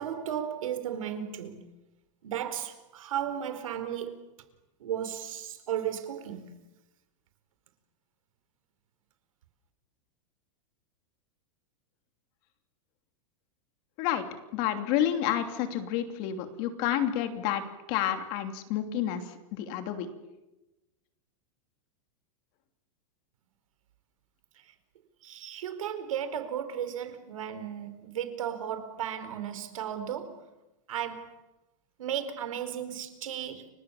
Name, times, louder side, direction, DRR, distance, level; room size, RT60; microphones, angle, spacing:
voice 1, 0.0-1.7 2.2-4.2 4.8-6.5 25.2-30.4 30.9-31.4 32.0-33.7, right 9 dB, 85° right, 4.4 m, -35 dB
voice 2, 14.5-17.6 17.9-19.2 19.5-20.1, left 11 dB, 35° left, 3.0 m, -29 dB
30.0 x 25.0 x 7.3 m
supercardioid pair, 170°, 17 cm